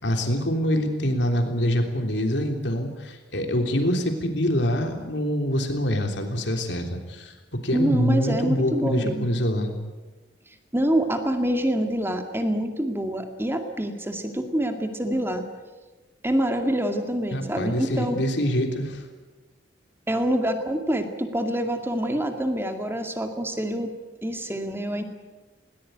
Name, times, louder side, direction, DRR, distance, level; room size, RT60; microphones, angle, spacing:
voice 1, 0.0-7.3 7.6-9.7 17.3-19.0, equal, 70° left, 4 dB, 3.4 m, -25 dB
voice 2, 7.7-9.3 10.7-15.5 16.2-18.2 20.1-23.9 24.2-25.0, right 1 dB, 15° right, 5 dB, 2.2 m, -26 dB
20.5 x 19.0 x 9.3 m, 1.2 s
head